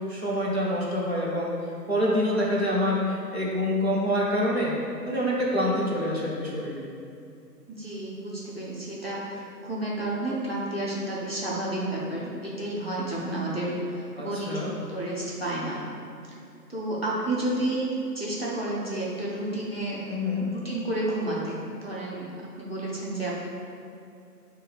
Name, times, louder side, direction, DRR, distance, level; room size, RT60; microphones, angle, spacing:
voice 1, 0.1-1.5 1.9-4.7 5.0-6.9 14.2-14.7 20.1-20.5, equal, 40° right, -6 dB, 0.6 m, -26 dB
voice 2, 7.7-15.8 16.7-20.1 20.5-22.3 22.6-23.3, right 1 dB, 40° left, -6 dB, 0.5 m, -31 dB
5.3 x 2.2 x 3.2 m, 2.4 s
hypercardioid pair, 175°, 49 cm